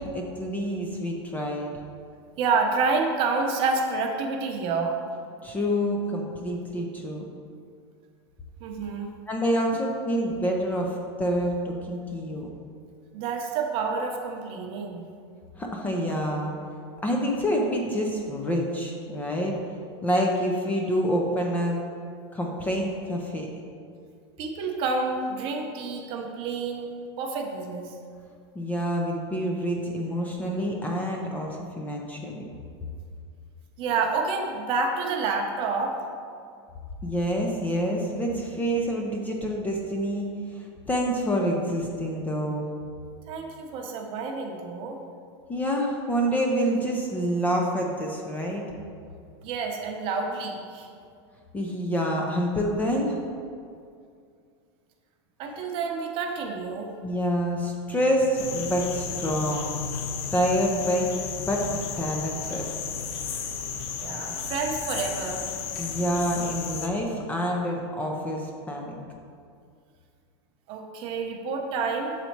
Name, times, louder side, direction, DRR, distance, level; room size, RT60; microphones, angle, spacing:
voice 1, 0.0-1.7 5.4-7.2 9.3-12.5 15.6-16.5 17.0-19.5 20.0-21.8 22.3-23.5 28.5-32.4 37.0-40.2 40.5-42.6 45.5-48.6 51.5-53.2 57.0-59.8 60.3-61.1 61.4-61.7 62.0-62.6 65.8-69.0, equal, 10° left, 0 dB, 0.5 m, -27 dB
voice 2, 2.4-5.0 8.6-9.1 13.1-15.1 24.4-28.0 33.8-36.0 43.3-45.0 49.4-50.9 55.4-56.9 64.0-65.4 70.7-72.2, right 4 dB, 35° right, 3 dB, 0.7 m, -28 dB
sound 1, 58.4-66.9, left 6 dB, 60° left, 0.7 m, -33 dB
6.8 x 4.1 x 4.5 m, 2.3 s
supercardioid pair, 155°, 15 cm